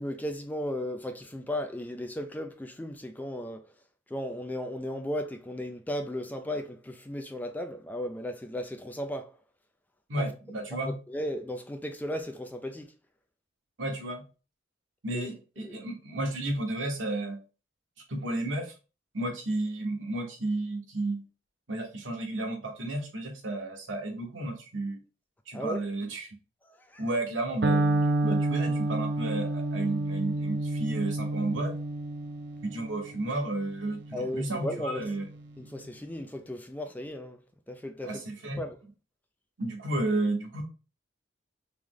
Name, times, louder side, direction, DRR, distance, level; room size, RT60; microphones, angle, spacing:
voice 1, 0.0-3.6 4.1-9.3 10.2-10.3 10.8-12.9 15.1-15.3 15.6-15.8 25.5-25.8 26.7-27.0 34.1-35.2 35.6-37.4 37.7-38.2 38.6-38.8, left 1 dB, 10° left, 0.3 m, -35 dB
voice 2, 10.1-11.0 13.8-14.2 15.0-17.4 18.1-18.7 19.1-21.2 21.7-25.0 25.5-26.4 27.0-31.7 32.6-35.3 38.0-38.6 39.6-40.6, right 2 dB, 80° right, 1.1 m, -32 dB
Electric guitar, 27.6-35.5, right 2 dB, 60° right, 0.5 m, -30 dB
3.4 x 3.1 x 3.6 m
head